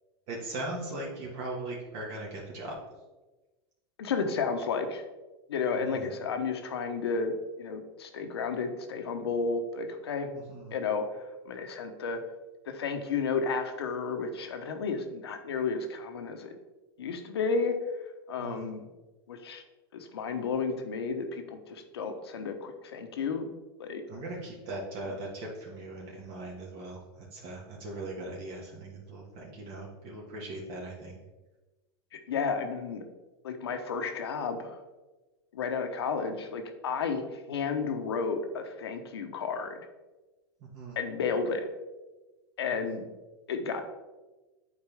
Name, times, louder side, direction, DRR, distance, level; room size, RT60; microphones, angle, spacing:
voice 1, 0.3-2.7 5.8-6.1 10.3-10.7 18.4-18.7 24.1-27.0 27.3-31.2 40.6-41.0, right 2 dB, 55° right, -3 dB, 1.7 m, -39 dB
voice 2, 4.0-5.0 5.5-10.3 10.7-11.1 11.5-12.2 12.7-16.5 17.0-17.8 18.3-18.9 19.3-19.6 19.9-23.5 23.8-24.0 32.1-33.0 33.4-34.8 35.5-39.8 41.0-41.7 42.6-43.1 43.5-43.8, left 5 dB, 90° left, 6 dB, 0.9 m, -32 dB
8.3 x 4.5 x 3.5 m, 1.1 s
hypercardioid pair, 105°, 13 cm